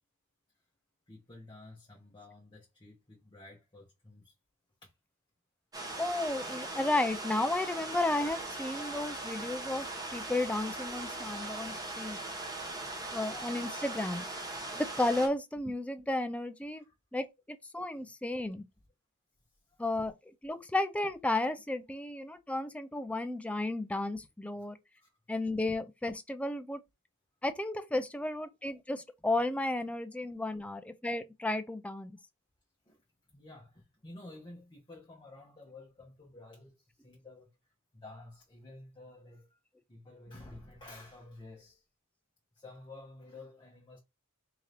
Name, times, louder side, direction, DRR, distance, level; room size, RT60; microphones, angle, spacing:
voice 1, 1.1-4.3 4.8-4.9 16.8-16.9 19.7-19.8 24.6-24.7 25.0-25.1 32.9-33.0 33.3-37.5 37.9-39.6 39.9-41.8 42.5-44.0, left 2 dB, 20° left, 0.8 m, -52 dB
sound 1, 5.7-15.3, right 2 dB, 15° right, 0.9 m, -40 dB
voice 2, 6.0-9.9 10.1-12.2 13.1-14.2 14.7-16.8 17.1-18.7 19.8-20.1 20.4-24.8 25.3-26.8 27.4-32.2, left 2 dB, 5° left, 0.3 m, -33 dB
3.7 x 2.7 x 3.3 m
head